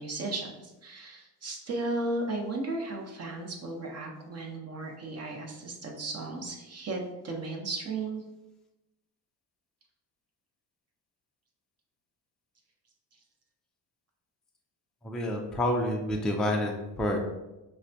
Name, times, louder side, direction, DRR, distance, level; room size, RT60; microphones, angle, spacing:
voice 1, 0.0-8.2, right 2 dB, 40° right, 1 dB, 0.8 m, -35 dB
voice 2, 15.0-17.2, left 1 dB, ahead, 0 dB, 0.4 m, -28 dB
4.7 x 2.2 x 2.7 m, 0.99 s
cardioid pair, 90°, 41 cm